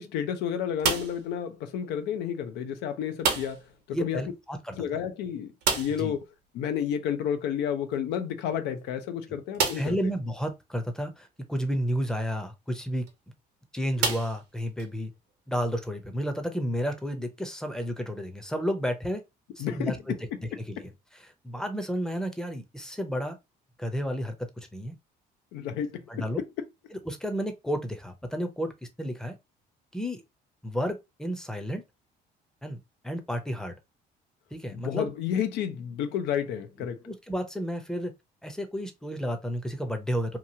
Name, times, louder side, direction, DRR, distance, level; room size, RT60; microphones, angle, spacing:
voice 1, 0.0-4.2 4.7-6.2 6.5-10.1 19.6-19.9 25.5-26.1 34.7-37.0, left 9 dB, 90° left, 0.5 m, -31 dB
sound 1, 0.8-1.3 3.2-3.7 4.0-4.1 4.4-4.5 5.6-6.2 7.9-8.0 8.6-8.7 9.5-10.0 10.8-10.9 12.9-13.1 14.0-14.9, right 5 dB, 85° right, 0.9 m, -29 dB
voice 2, 3.9-4.7 6.0-6.1 9.8-13.0 13.7-15.1 15.5-19.2 19.6-20.0 20.7-20.8 21.4-23.4 23.8-24.9 26.1-26.4 27.1-28.7 29.0-29.4 29.9-30.2 30.6-31.8 32.6-32.8 33.0-33.7 34.5-35.1 37.1-38.1 38.4-40.4, equal, 5° left, 0.6 m, -31 dB
2.9 x 2.3 x 2.7 m
cardioid pair, 110°, 17 cm